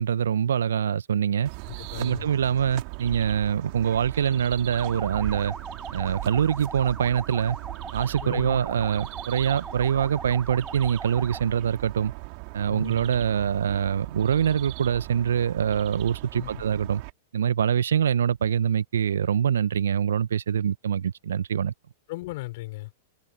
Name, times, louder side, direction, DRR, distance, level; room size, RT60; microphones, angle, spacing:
voice 1, 0.0-1.5 1.9-5.5 5.9-7.6 7.9-12.1 12.5-17.0 17.3-21.7, right 8 dB, 70° right, 1.3 m, -24 dB
sound 1, 1.5-17.1, right 38 dB, 45° right, 2.9 m, -39 dB
voice 2, 1.6-2.3 8.2-8.6 12.7-13.1 16.3-16.6 22.1-22.9, left 20 dB, 55° left, 6.4 m, -37 dB
sound 2, 4.7-11.5, right 4 dB, 10° right, 1.4 m, -40 dB
figure-of-eight pair, 100°, 0 cm